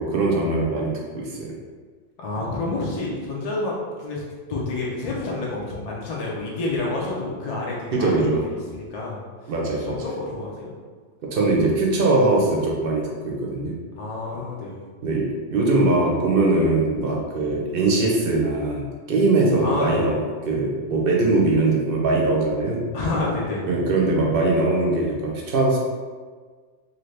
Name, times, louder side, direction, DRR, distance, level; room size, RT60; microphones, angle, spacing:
voice 1, 0.0-1.5 7.9-8.4 9.5-10.0 11.3-13.7 15.0-20.2 20.5-22.8 23.7-25.8, right 2 dB, 55° right, -2 dB, 0.7 m, -21 dB
voice 2, 2.2-4.2 4.5-9.2 9.8-10.7 14.0-14.8 19.6-20.2 22.9-23.8, left 2 dB, 50° left, -4 dB, 0.4 m, -28 dB
2.7 x 2.6 x 3.2 m, 1.5 s
omnidirectional pair, 1.3 m